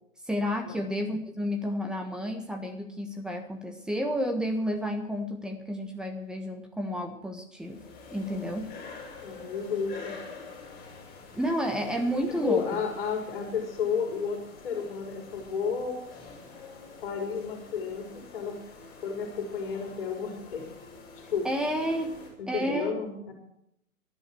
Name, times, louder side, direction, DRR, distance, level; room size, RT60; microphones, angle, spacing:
voice 1, 0.2-7.8 8.1-8.7 11.3-12.8 21.4-22.2 22.5-22.9, equal, ahead, 4 dB, 1.5 m, -31 dB
sound 1, 7.6-22.3, left 4 dB, 20° left, 6.7 m, -47 dB
voice 2, 9.2-10.2 12.3-16.0 17.0-18.6 19.0-20.7 21.3-21.5 22.4-23.3, left 6 dB, 40° left, 2 dB, 4.6 m, -32 dB
18.0 x 12.0 x 4.7 m, 0.75 s
figure-of-eight pair, 130°, 43 cm